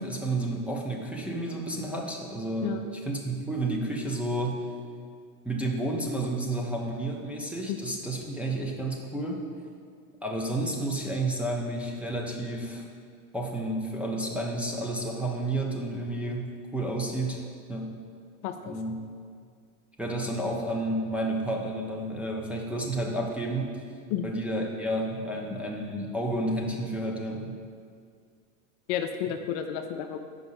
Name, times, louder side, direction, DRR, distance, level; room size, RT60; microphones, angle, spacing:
voice 1, 0.0-4.7 5.4-9.5 10.2-12.8 13.3-17.4 17.7-18.0 18.7-19.0 20.0-23.8 24.2-27.6, right 1 dB, 5° right, -2 dB, 0.5 m, -31 dB
voice 2, 18.4-18.7 24.1-24.3 28.9-30.2, left 9 dB, 50° left, 7 dB, 0.5 m, -31 dB
5.2 x 4.8 x 5.5 m, 2.1 s
hypercardioid pair, 110°, 42 cm